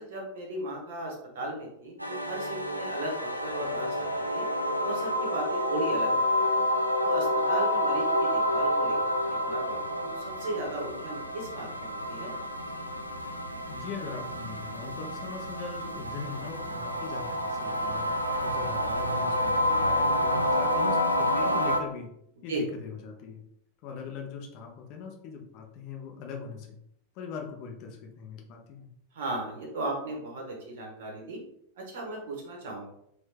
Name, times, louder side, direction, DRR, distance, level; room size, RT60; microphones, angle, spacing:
voice 1, 0.0-4.5 4.8-6.7 7.0-12.3 22.5-22.6 29.1-31.4 31.8-32.9, right 2 dB, 55° right, 0 dB, 1.2 m, -36 dB
sound 1, 2.0-21.8, left 1 dB, 90° right, 0.4 m, -29 dB
voice 2, 13.7-18.1 18.4-22.1 22.4-23.4 23.8-26.8 27.1-28.9, left 5 dB, 45° left, 2 dB, 0.8 m, -41 dB
3.5 x 3.1 x 3.5 m, 0.73 s
figure-of-eight pair, 90°, 0 cm